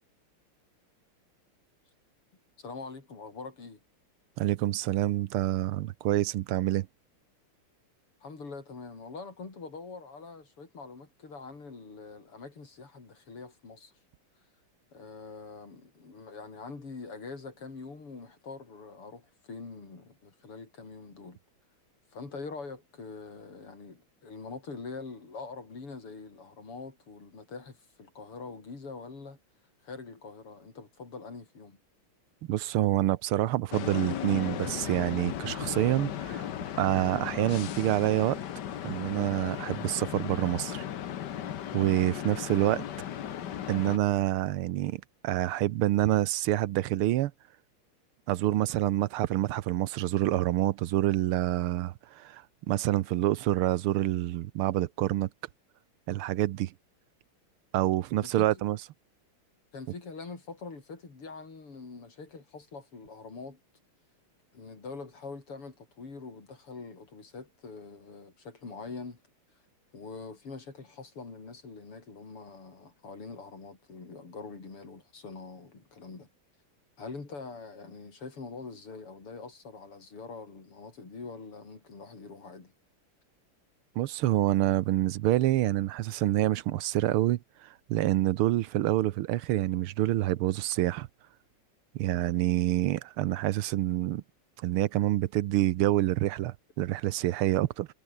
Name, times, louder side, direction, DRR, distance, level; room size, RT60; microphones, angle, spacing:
voice 1, 2.6-3.8 8.2-13.9 14.9-21.4 22.1-29.4 29.8-31.8 58.2-58.6 59.7-63.6 64.5-69.2 69.9-76.3 77.0-82.7, left 4 dB, 85° left, 5.6 m, -44 dB
voice 2, 4.4-6.9 32.5-36.5 36.8-38.4 38.8-40.8 41.7-42.8 43.7-47.3 48.3-55.3 56.1-56.7 57.7-58.8 84.0-91.1 91.9-94.2 94.6-97.9, right 15 dB, 85° right, 1.6 m, -27 dB
sound 1, 33.7-44.0, left 10 dB, 55° left, 1.5 m, -36 dB
omnidirectional pair, 2.4 m